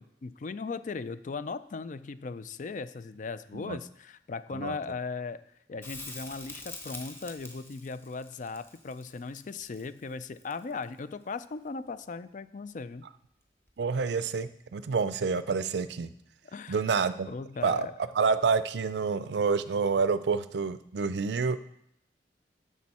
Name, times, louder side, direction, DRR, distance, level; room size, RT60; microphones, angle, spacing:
voice 1, 0.0-5.4 5.7-13.0 16.5-17.9, left 4 dB, 45° left, 14 dB, 0.4 m, -38 dB
Crackle, 5.8-10.9 13.7-13.8, left 2 dB, 15° left, 1.2 m, -45 dB
voice 2, 13.8-16.1 16.7-17.3 17.6-17.9 18.1-21.6, right 5 dB, 75° right, 14 dB, 0.5 m, -28 dB
10.5 x 7.1 x 4.2 m, 0.76 s
head